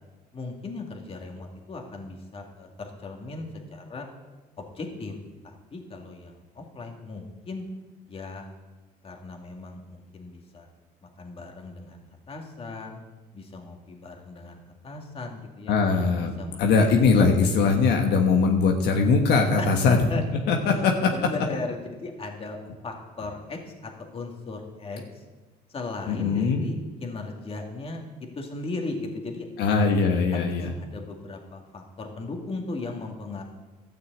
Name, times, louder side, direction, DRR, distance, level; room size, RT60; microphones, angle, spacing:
voice 1, 0.3-4.1 4.6-5.2 5.4-7.6 8.1-8.5 9.0-10.7 11.0-13.0 13.3-15.7 16.2-16.8 19.6-20.2 20.6-25.2 25.7-28.0 28.3-29.5 30.3-33.4, left 3 dB, 35° left, 2 dB, 2.3 m, -37 dB
voice 2, 15.7-16.3 16.6-20.0 20.5-21.1 26.1-26.7 29.6-30.7, left 4 dB, 80° left, 2 dB, 1.3 m, -21 dB
13.0 x 6.7 x 8.1 m, 1.2 s
cardioid pair, 110°, 17 cm